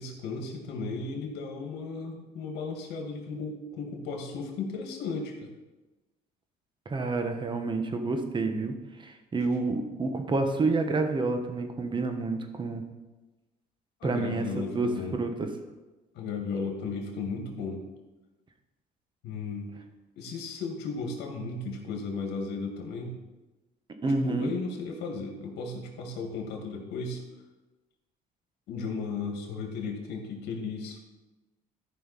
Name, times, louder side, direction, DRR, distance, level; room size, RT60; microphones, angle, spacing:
voice 1, 0.0-5.5 14.0-15.2 16.2-17.8 19.2-19.7 20.2-23.2 24.2-27.2 28.7-31.0, left 4 dB, 80° left, 2 dB, 2.0 m, -35 dB
voice 2, 6.8-8.7 9.0-12.8 14.0-15.5 24.0-24.5, right 3 dB, 30° right, 6 dB, 1.3 m, -29 dB
13.5 x 5.5 x 4.2 m, 1.1 s
cardioid pair, 110°, 17 cm